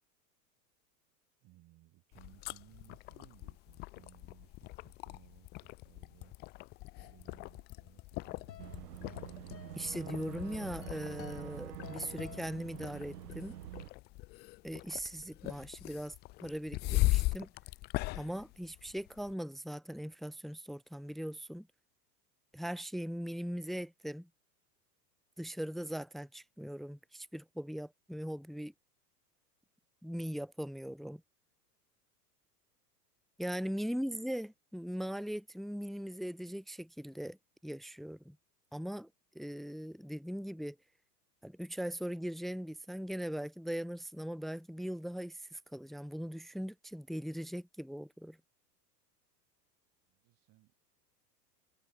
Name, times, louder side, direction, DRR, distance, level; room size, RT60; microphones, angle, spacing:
voice 1, 1.4-6.3 7.0-8.9 34.0-34.1 50.1-50.7, right 18 dB, 45° right, 6.2 m, -62 dB
sound 1, 2.1-19.3, left 21 dB, 25° left, 0.4 m, -39 dB
sound 2, 7.9-13.3, left 11 dB, 85° left, 1.7 m, -53 dB
Boat Water vehicle / Engine, 8.6-13.9, right 15 dB, 70° right, 2.3 m, -46 dB
voice 2, 9.8-13.6 14.6-16.1 16.4-17.5 18.1-21.7 22.5-24.3 25.4-28.7 30.0-31.2 33.4-37.4 37.6-38.4 38.7-39.1 39.3-40.8 41.4-48.4, equal, ahead, 1.4 m, -40 dB
hypercardioid pair, 105°, 49 cm